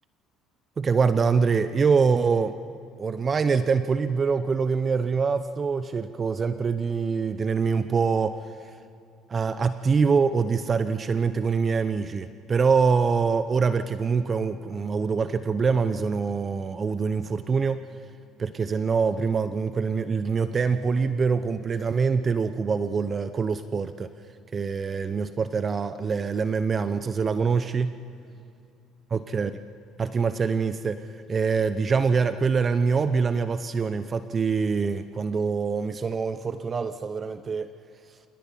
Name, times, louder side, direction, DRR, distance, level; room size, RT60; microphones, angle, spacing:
voice 1, 0.8-2.5 3.0-8.4 8.6-8.7 9.3-17.8 18.4-24.1 24.5-28.0 29.1-29.5 30.0-37.7, right 5 dB, 35° right, 12 dB, 0.8 m, -24 dB
27.5 x 18.5 x 5.5 m, 2.6 s
supercardioid pair, 80°, 0 cm